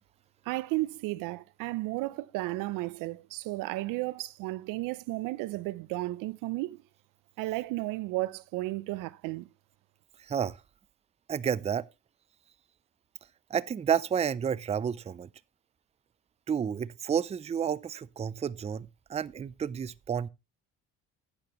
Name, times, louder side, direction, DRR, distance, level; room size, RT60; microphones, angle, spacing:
voice 1, 0.5-6.8 7.4-9.5, right 19 dB, 90° right, 0.6 m, -33 dB
voice 2, 10.2-10.6 11.3-11.9 13.5-15.3 16.5-20.3, right 8 dB, 20° right, 0.4 m, -30 dB
11.5 x 9.0 x 3.0 m
cardioid pair, 110°, 32 cm